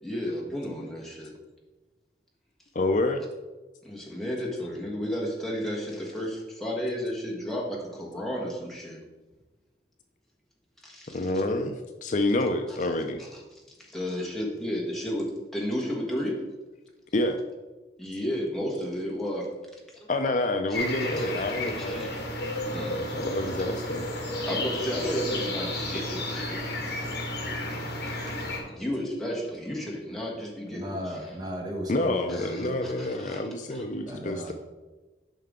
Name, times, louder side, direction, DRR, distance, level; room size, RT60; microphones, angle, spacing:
voice 1, 0.0-1.3 3.8-9.0 10.8-11.4 12.7-12.8 13.2-16.4 18.0-19.5 21.1-21.3 21.8-22.2 22.7-23.0 24.4-26.6 27.7-27.9 28.6-31.3 32.3-33.4 33.7-33.8, equal, ahead, -4 dB, 1.5 m, -33 dB
voice 2, 2.7-3.2 11.1-11.7 12.0-13.2 17.1-17.4 20.1-22.1 23.2-24.1 31.9-34.5, left 2 dB, 40° left, 6 dB, 0.5 m, -28 dB
sound 1, 20.7-28.6, left 1 dB, 60° left, 1.6 m, -32 dB
voice 3, 30.7-32.8 34.1-34.5, equal, 20° right, 1 dB, 1.0 m, -36 dB
9.1 x 5.7 x 3.7 m, 1.2 s
head